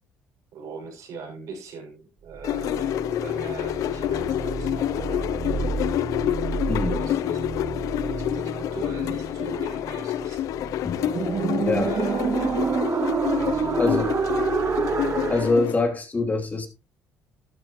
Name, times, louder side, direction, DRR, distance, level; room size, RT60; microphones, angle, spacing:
voice 1, 0.5-5.4 6.9-7.4 7.9-10.4 11.7-12.6 13.2-14.0, right 4 dB, 70° right, 6.3 m, -40 dB
sound 1, 2.3-15.6, right 6 dB, 40° right, 0.6 m, -29 dB
sound 2, 2.4-15.8, left 12 dB, 70° left, 0.6 m, -28 dB
voice 2, 13.8-14.1 15.3-16.7, left 3 dB, 25° left, 3.1 m, -24 dB
12.5 x 11.5 x 3.1 m
supercardioid pair, 75°, 6 cm